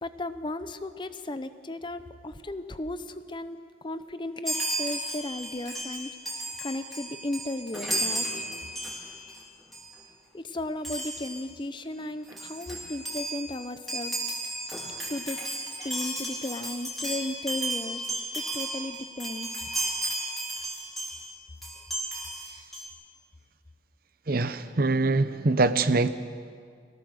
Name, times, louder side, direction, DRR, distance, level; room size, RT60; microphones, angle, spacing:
voice 1, 0.0-8.5 10.3-14.3 15.1-15.4 15.8-19.5, left 1 dB, 25° left, 11 dB, 0.7 m, -35 dB
Chime, 4.4-9.4 9.7-9.9 10.8-11.4 12.0-12.1 12.3-21.3 21.6-22.9, right 1 dB, ahead, 3.7 m, -34 dB
voice 2, 24.3-26.1, right 3 dB, 55° right, 12 dB, 0.8 m, -23 dB
23.0 x 18.0 x 6.6 m, 2.1 s
head